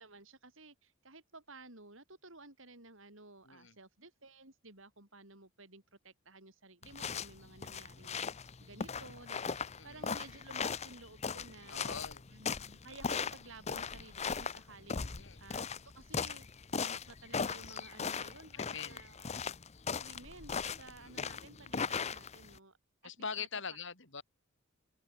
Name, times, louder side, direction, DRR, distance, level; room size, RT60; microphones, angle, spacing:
voice 1, 0.0-11.9 12.3-16.5 16.7-19.3 20.0-22.8 23.0-23.5, right 2 dB, 65° right, 6.9 m, -55 dB
voice 2, 3.4-3.8 9.8-10.0 11.7-12.2 15.0-15.4 18.5-19.0 21.0-21.4 23.0-24.2, left 6 dB, 60° left, 5.5 m, -43 dB
sound 1, 6.8-22.6, left 5 dB, 30° left, 0.7 m, -38 dB
open air
head